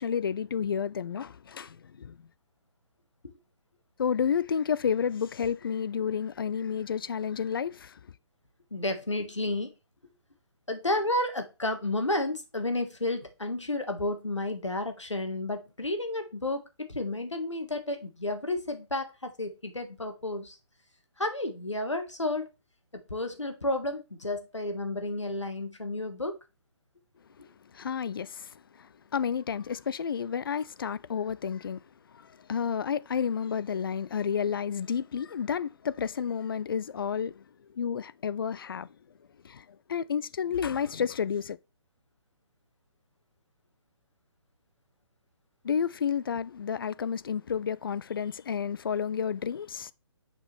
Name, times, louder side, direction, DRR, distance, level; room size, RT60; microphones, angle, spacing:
voice 1, 0.0-2.2 4.0-8.0 27.7-31.8 32.1-37.4 37.7-38.9 39.4-41.6 45.6-49.9, left 7 dB, 50° left, 0.4 m, -31 dB
voice 2, 8.7-9.7 10.7-20.6 21.2-22.5 22.9-26.4, left 2 dB, 85° left, 1.5 m, -31 dB
6.5 x 4.8 x 3.3 m
figure-of-eight pair, 140°, 15 cm